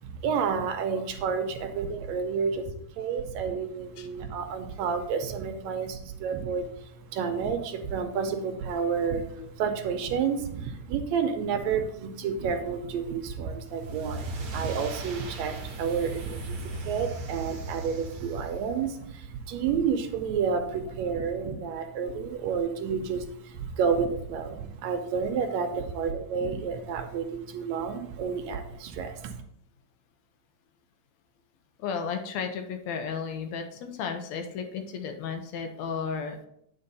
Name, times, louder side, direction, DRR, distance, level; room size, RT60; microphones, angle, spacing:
voice 1, 0.0-29.4, right 6 dB, 80° right, 7 dB, 1.9 m, -30 dB
sound 1, 13.6-19.0, right 2 dB, 55° right, 1.2 m, -37 dB
voice 2, 31.8-36.5, left 6 dB, 75° left, 6 dB, 1.9 m, -34 dB
8.9 x 4.1 x 4.0 m, 0.72 s
omnidirectional pair, 3.3 m